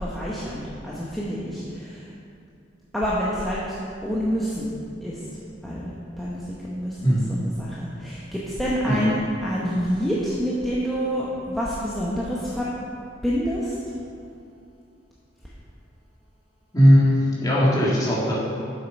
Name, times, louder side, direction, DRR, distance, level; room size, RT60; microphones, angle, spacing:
voice 1, 0.0-2.1 2.9-3.8 4.0-4.7 5.0-5.3 5.6-12.7 13.2-13.9, equal, ahead, -8 dB, 0.9 m, -27 dB
voice 2, 16.7-18.3, equal, 20° left, -7 dB, 2.1 m, -18 dB
7.5 x 7.4 x 5.3 m, 2.6 s
head